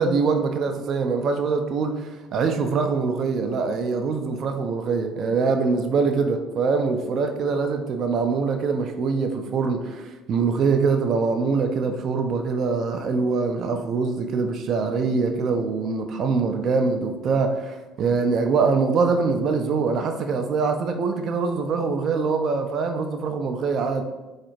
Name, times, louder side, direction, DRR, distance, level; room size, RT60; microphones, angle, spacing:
voice 1, 0.0-24.0, right 4 dB, 50° right, 5 dB, 0.3 m, -23 dB
4.0 x 2.4 x 2.9 m, 1.2 s
figure-of-eight pair, 55°, 0 cm